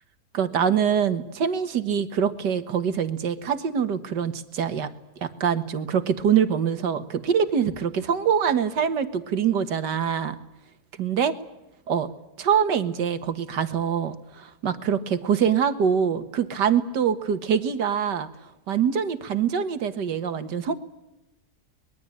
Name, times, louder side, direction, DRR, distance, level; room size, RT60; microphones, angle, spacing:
voice 1, 0.3-4.9 5.2-10.4 11.0-11.3 11.9-12.1 12.4-18.3 18.7-20.7, right 7 dB, 85° right, 10 dB, 2.1 m, -24 dB
24.5 x 21.5 x 8.8 m, 0.92 s
omnidirectional pair, 1.8 m